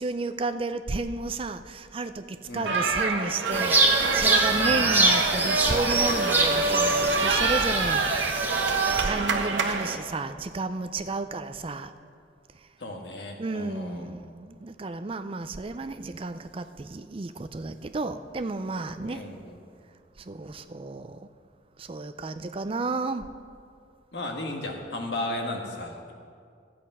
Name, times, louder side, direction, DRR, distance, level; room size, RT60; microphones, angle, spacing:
voice 1, 0.0-8.6 9.0-11.9 13.4-19.2 20.2-21.2 21.8-23.2, right 3 dB, 30° right, 10 dB, 0.4 m, -32 dB
voice 2, 2.5-2.8 4.5-4.9 12.8-14.2 19.0-19.6 24.1-26.1, left 1 dB, 65° left, 2 dB, 1.5 m, -35 dB
sound 1, 2.7-10.0, right 4 dB, 85° right, 1.2 m, -25 dB
sound 2, 3.5-9.0, right 2 dB, 10° right, 1.0 m, -25 dB
13.0 x 8.4 x 5.5 m, 2.2 s
head